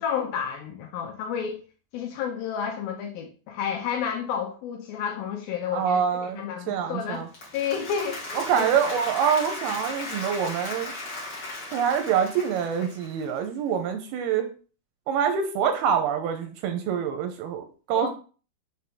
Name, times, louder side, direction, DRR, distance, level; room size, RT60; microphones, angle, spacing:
voice 1, 0.0-1.6 1.9-6.0 6.4-7.3 7.5-8.7 17.9-18.1, left 7 dB, 75° left, 2.3 m, -30 dB
voice 2, 5.7-7.3 8.3-10.9 11.7-14.5 15.1-18.1, right 8 dB, 80° right, 2.4 m, -26 dB
Applause, 7.1-13.4, left 2 dB, 55° left, 1.2 m, -36 dB
6.7 x 4.1 x 3.5 m
omnidirectional pair, 4.8 m